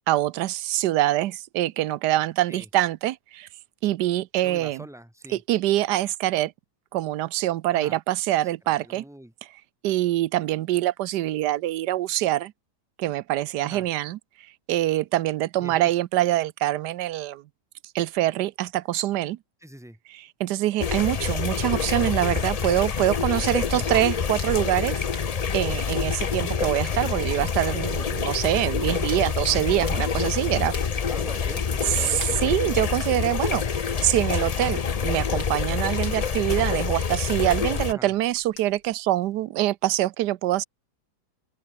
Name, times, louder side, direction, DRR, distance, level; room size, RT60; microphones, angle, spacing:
voice 1, 0.1-3.5 3.8-4.8 5.3-6.5 6.9-9.0 9.8-12.5 13.0-14.2 14.7-17.4 17.9-19.4 20.1-25.0 25.5-30.7 31.8-40.6, right 15 dB, 85° right, 1.2 m, -25 dB
voice 2, 4.4-5.4 7.7-8.0 8.4-9.3 13.6-13.9 15.6-15.9 19.6-20.0 23.7-24.0 30.8-32.8 37.9-38.1, right 1 dB, ahead, 1.8 m, -44 dB
sound 1, 20.8-37.9, left 6 dB, 65° left, 0.3 m, -27 dB
sound 2, 23.4-39.0, left 2 dB, 80° left, 7.0 m, -49 dB
open air
omnidirectional pair, 1.8 m